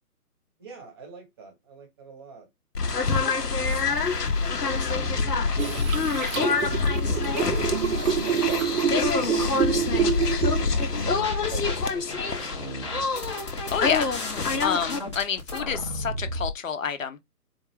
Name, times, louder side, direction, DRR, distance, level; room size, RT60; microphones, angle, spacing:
voice 1, 0.6-2.5 3.0-3.2 3.8-4.1 4.4-7.1 7.4-9.1 9.7-12.9, right 4 dB, 15° right, 0.8 m, -44 dB
sound 1, 2.7-15.0, left 4 dB, 85° left, 0.9 m, -26 dB
sound 2, 5.6-10.9, right 8 dB, 60° right, 0.6 m, -27 dB
sound 3, 10.9-11.7 12.1-16.5, left 1 dB, 20° left, 0.6 m, -34 dB
voice 2, 13.7-14.1 14.6-17.2, left 6 dB, 55° left, 0.7 m, -29 dB
4.3 x 2.4 x 3.2 m
figure-of-eight pair, 140°, 46 cm